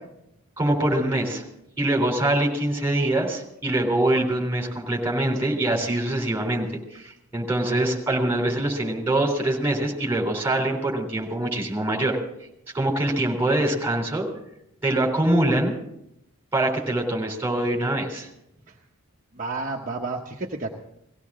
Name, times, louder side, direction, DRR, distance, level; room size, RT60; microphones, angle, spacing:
voice 1, 0.6-1.4 1.8-12.2 12.7-14.3 14.8-15.8 16.5-18.3, right 1 dB, 10° right, -1 dB, 3.5 m, -24 dB
voice 2, 19.3-20.7, right 3 dB, 35° right, -1 dB, 1.0 m, -31 dB
19.0 x 16.5 x 3.7 m, 0.79 s
head